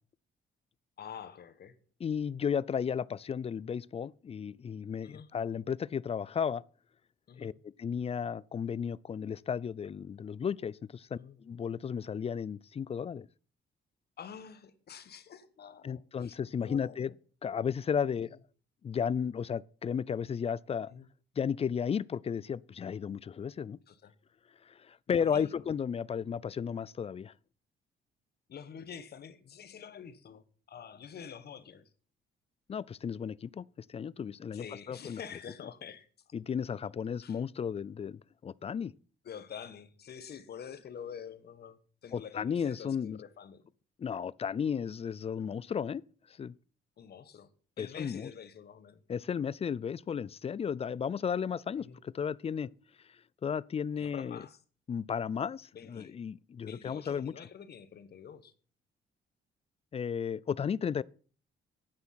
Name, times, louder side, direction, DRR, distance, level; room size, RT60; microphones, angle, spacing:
voice 1, 1.0-1.7 5.0-5.3 7.3-7.5 11.1-11.4 14.2-16.4 16.6-17.2 18.2-18.4 20.9-21.1 23.9-24.1 25.1-25.7 28.5-31.9 34.5-36.1 37.2-37.4 39.2-43.6 47.0-47.5 47.8-49.0 51.8-52.0 54.0-54.6 55.7-56.2 56.6-58.5, left 7 dB, 55° left, 1.1 m, -47 dB
voice 2, 2.0-6.6 7.4-7.5 7.8-13.3 15.8-17.1 17.4-18.4 18.8-20.9 21.4-23.8 24.7-27.3 32.7-35.2 36.3-38.9 42.1-43.2 44.0-46.0 46.4-46.5 47.8-48.3 49.1-52.7 53.4-54.4 54.9-57.3 59.9-61.0, left 7 dB, 30° left, 0.4 m, -34 dB
9.4 x 9.0 x 5.8 m
cardioid pair, 90°, 20 cm